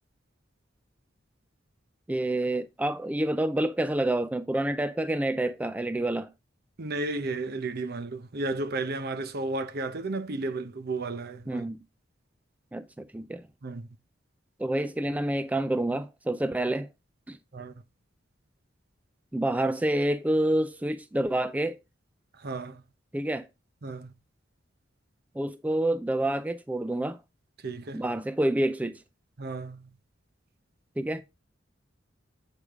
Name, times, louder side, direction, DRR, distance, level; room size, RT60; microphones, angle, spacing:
voice 1, 2.1-6.3 11.5-11.8 12.7-13.5 14.6-16.9 17.3-17.4 19.3-21.8 23.1-23.5 25.3-27.2 27.9-29.0 31.0-31.2, right 1 dB, 10° right, 0.3 m, -28 dB
voice 2, 6.8-11.7 13.6-13.9 17.5-17.7 22.3-22.8 23.8-24.1 27.6-28.0 29.4-29.9, right 2 dB, 55° right, 0.7 m, -33 dB
8.3 x 4.9 x 3.6 m
head